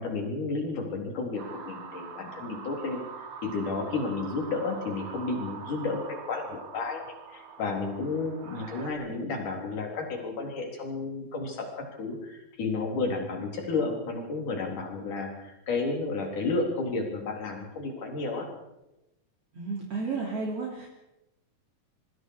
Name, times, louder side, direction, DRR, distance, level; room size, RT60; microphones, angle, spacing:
voice 1, 0.0-3.0 3.4-7.0 7.3-18.5, left 3 dB, 65° left, 2 dB, 5.3 m, -32 dB
sound 1, 1.4-8.9, right 6 dB, 75° right, 4.2 m, -43 dB
voice 2, 19.5-20.9, right 4 dB, 45° right, -2 dB, 3.8 m, -32 dB
25.5 x 24.0 x 4.8 m, 0.95 s
omnidirectional pair, 3.9 m